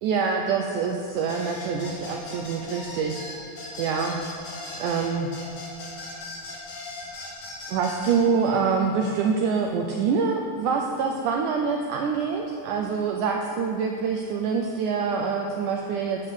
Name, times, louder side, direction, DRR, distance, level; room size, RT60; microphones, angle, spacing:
voice 1, 0.0-3.3 3.8-4.2 4.8-5.3 7.7-16.3, right 5 dB, 80° right, 2 dB, 1.9 m, -25 dB
sound 1, 1.3-8.2, left 2 dB, 65° left, 4.4 m, -38 dB
9.7 x 9.3 x 6.3 m, 2.9 s
omnidirectional pair, 4.3 m